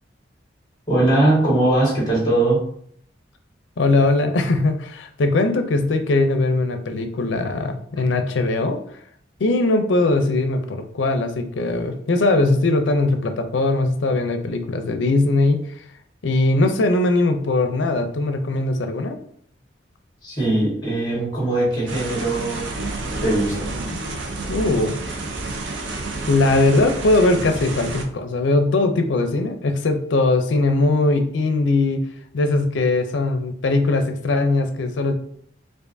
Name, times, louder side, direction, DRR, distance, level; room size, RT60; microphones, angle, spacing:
voice 1, 0.9-2.6 20.2-22.7 23.2-23.7, right 2 dB, 25° left, -5 dB, 1.5 m, -20 dB
voice 2, 3.8-8.8 9.4-15.6 16.2-19.2 24.5-25.0 26.3-32.0 32.3-35.1, left 2 dB, 85° left, 7 dB, 0.5 m, -20 dB
sound 1, 21.9-28.0, right 2 dB, 85° right, 0.6 m, -29 dB
4.6 x 2.5 x 2.6 m, 0.65 s
head